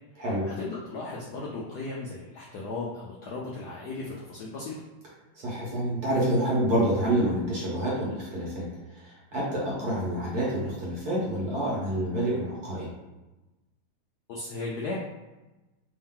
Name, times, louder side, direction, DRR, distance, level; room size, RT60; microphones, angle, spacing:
voice 1, 0.2-4.8 14.3-14.9, left 3 dB, 75° left, -4 dB, 0.9 m, -36 dB
voice 2, 5.4-8.7 8.9-12.9, right 1 dB, 50° right, -5 dB, 1.4 m, -27 dB
3.5 x 2.7 x 3.6 m, 1.1 s
omnidirectional pair, 2.3 m